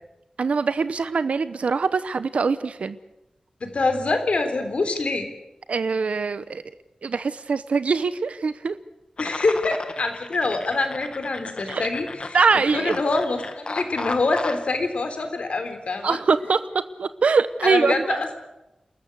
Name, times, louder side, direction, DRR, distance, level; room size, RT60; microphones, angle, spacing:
voice 1, 0.4-3.0 5.7-6.6 7.0-8.8 11.7-11.8 12.3-13.0 16.0-18.2, right 4 dB, 85° right, 13 dB, 0.8 m, -23 dB
voice 2, 3.6-5.3 9.2-12.1 12.7-16.2 17.6-18.4, left 3 dB, 70° left, 7 dB, 3.6 m, -25 dB
sound 1, 9.2-14.7, left 3 dB, 50° left, 1.4 m, -35 dB
29.5 x 13.5 x 8.2 m, 0.95 s
wide cardioid pair, 95°, 2 cm